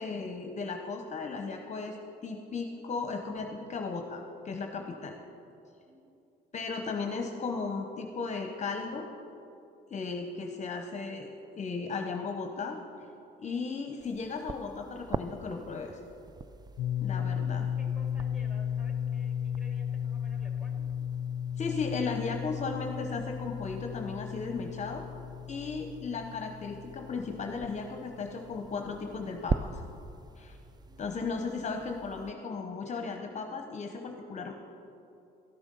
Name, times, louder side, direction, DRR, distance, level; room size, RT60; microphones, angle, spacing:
voice 1, 0.0-2.0 2.2-5.2 6.5-9.1 9.9-11.3 11.5-12.8 13.4-16.0 17.0-17.7 21.6-25.1 25.5-29.8 30.4-30.6 31.0-34.5, left 4 dB, 40° left, 4 dB, 0.8 m, -36 dB
sound 1, 14.0-32.3, right 4 dB, 20° right, 0.3 m, -43 dB
sound 2, 16.8-28.5, left 8 dB, 70° left, 0.4 m, -35 dB
voice 2, 17.8-20.8 30.9-31.0, left 2 dB, 5° right, 1 dB, 2.1 m, -54 dB
13.0 x 7.1 x 5.4 m, 2.8 s
cardioid pair, 90°, 19 cm